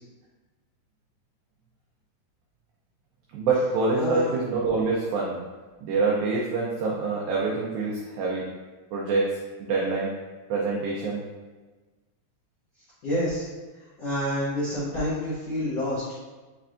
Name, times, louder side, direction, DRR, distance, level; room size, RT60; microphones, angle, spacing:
voice 1, 3.3-5.3 5.8-8.4 8.9-9.3 9.6-10.1 10.5-11.2, right 3 dB, 90° right, -4 dB, 2.0 m, -25 dB
voice 2, 4.0-4.3 13.0-13.4 14.0-16.0, left 1 dB, 80° left, -11 dB, 1.4 m, -28 dB
6.2 x 3.3 x 2.5 m, 1.3 s
omnidirectional pair, 4.9 m